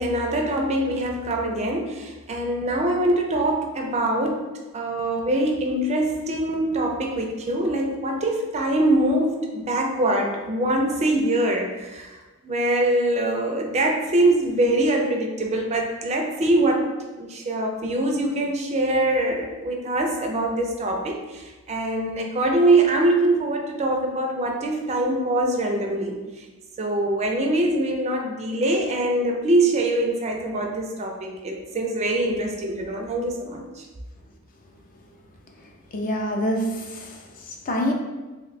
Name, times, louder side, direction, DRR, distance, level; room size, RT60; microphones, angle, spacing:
voice 1, 0.0-12.2 12.4-16.9 17.2-26.2 26.8-33.8, right 1 dB, 30° right, 0.4 m, -23 dB
voice 2, 35.9-37.9, equal, 40° left, 0.4 m, -26 dB
3.0 x 2.2 x 4.0 m
head